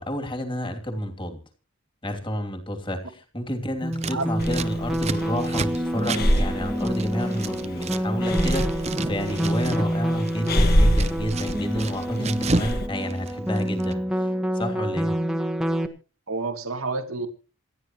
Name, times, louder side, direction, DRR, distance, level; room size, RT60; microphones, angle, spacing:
voice 1, 0.0-1.4 2.0-15.1, equal, 25° left, 5 dB, 3.0 m, -30 dB
sound 1, 3.8-15.9, equal, 5° right, 1.5 m, -27 dB
Scissors, 3.9-8.0 8.3-9.9 10.2-12.8 13.0-13.9, right 3 dB, 30° right, 0.7 m, -31 dB
voice 2, 4.1-4.6 16.3-17.3, right 3 dB, 90° right, 6 dB, 2.2 m, -30 dB
Breathing, 4.4-12.9, equal, 45° left, 1.8 m, -26 dB
27.5 x 10.5 x 3.1 m, 0.36 s
head